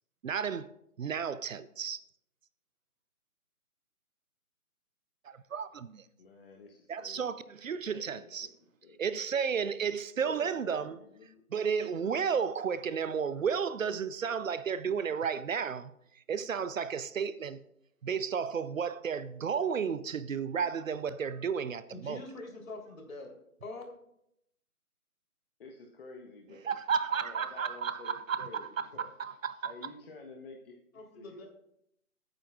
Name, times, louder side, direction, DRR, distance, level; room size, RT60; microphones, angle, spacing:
voice 1, 0.2-0.7 1.0-2.0 5.2-6.0 6.9-8.5 9.0-11.0 11.5-17.6 18.0-22.2 26.6-29.7, right 6 dB, 60° right, 0.7 m, -33 dB
voice 2, 6.2-7.2 7.9-8.5 8.8-9.0 10.2-11.4 12.0-12.1 25.6-26.7 27.1-28.7 28.9-29.1 29.6-31.4, left 3 dB, 40° left, 1.1 m, -50 dB
voice 3, 21.9-23.3 23.6-23.8 30.9-31.5, left 2 dB, 60° left, 3.5 m, -44 dB
18.0 x 9.0 x 2.4 m
figure-of-eight pair, 155°, 44 cm